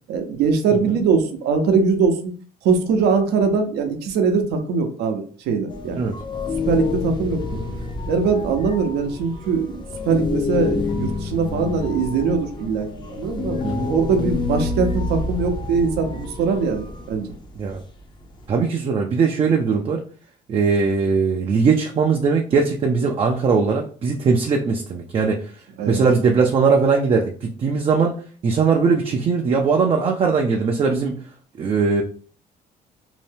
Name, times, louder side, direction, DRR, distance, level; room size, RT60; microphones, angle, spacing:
voice 1, 0.1-2.3 2.6-6.0 6.7-7.6 8.1-13.6 13.9-17.3 25.8-26.0, right 5 dB, 75° right, 6 dB, 0.6 m, -21 dB
sound 1, 5.7-18.5, left 3 dB, 25° left, 0.6 m, -28 dB
voice 2, 13.6-13.9 17.6-17.8 18.5-20.0 20.5-25.4 25.9-28.2 28.4-31.2 31.6-32.0, right 5 dB, 35° right, 2 dB, 0.4 m, -20 dB
2.7 x 2.1 x 3.2 m, 0.43 s
cardioid pair, 110°, 17 cm